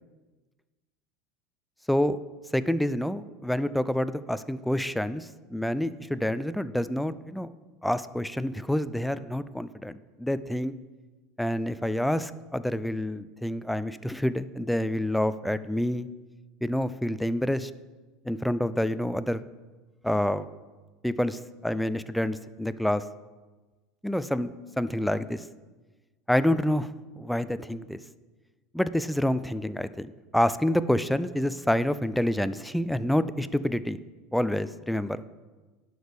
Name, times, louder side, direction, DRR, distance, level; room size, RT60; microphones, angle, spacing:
voice 1, 2.5-7.5 7.8-10.7 11.4-16.1 16.6-17.7 18.3-19.4 20.0-20.5 21.0-23.0 24.0-24.5 24.8-25.5 26.3-28.0 28.7-30.1 30.3-34.0 34.3-35.2, left 1 dB, 5° left, 14 dB, 0.4 m, -27 dB
11.0 x 5.0 x 3.4 m, 1.3 s
hypercardioid pair, 75°, 0 cm